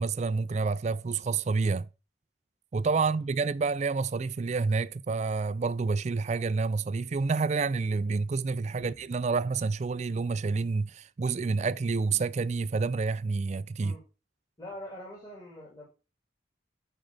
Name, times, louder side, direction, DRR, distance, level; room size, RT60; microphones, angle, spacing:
voice 1, 0.0-1.9 2.7-13.9, right 4 dB, 35° right, 0.3 m, -28 dB
voice 2, 8.6-9.0 13.8-14.0 14.6-15.8, left 1 dB, 20° left, 2.1 m, -44 dB
9.1 x 4.5 x 5.2 m
head